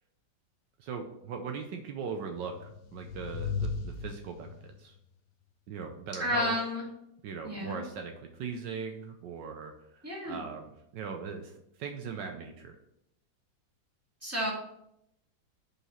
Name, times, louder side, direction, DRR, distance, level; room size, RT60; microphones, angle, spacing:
voice 1, 0.8-4.9 5.7-6.6 7.2-9.7 10.3-11.5 11.8-12.7, right 5 dB, 75° right, 4 dB, 1.3 m, -39 dB
sound 1, 2.4-4.8, left 5 dB, 75° left, 1.2 m, -36 dB
voice 2, 6.2-6.8 7.4-7.8 10.0-10.4 14.2-14.5, left 1 dB, 10° right, -5 dB, 2.3 m, -31 dB
5.3 x 4.8 x 5.6 m, 0.78 s
omnidirectional pair, 2.0 m